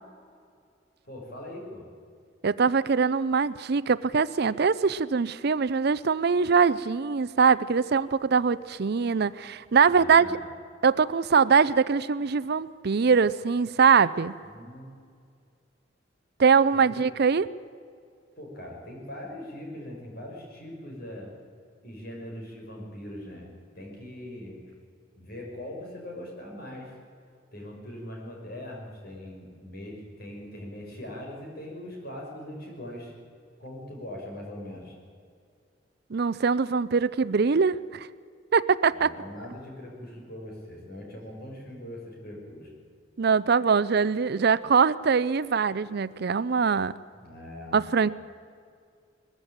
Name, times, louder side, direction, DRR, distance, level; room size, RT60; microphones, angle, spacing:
voice 1, 1.0-1.9 9.9-10.4 14.4-15.0 16.9-17.1 18.4-21.3 21.8-23.5 23.7-24.6 25.2-26.9 27.5-33.1 33.6-34.9 38.9-42.7 47.1-47.8, left 1 dB, 55° left, -1 dB, 5.9 m, -41 dB
voice 2, 2.4-10.3 10.8-14.3 16.4-17.5 36.1-38.1 38.5-39.1 43.2-46.9 47.7-48.1, right 5 dB, 55° right, 17 dB, 0.5 m, -22 dB
20.5 x 14.5 x 9.0 m, 2.2 s
head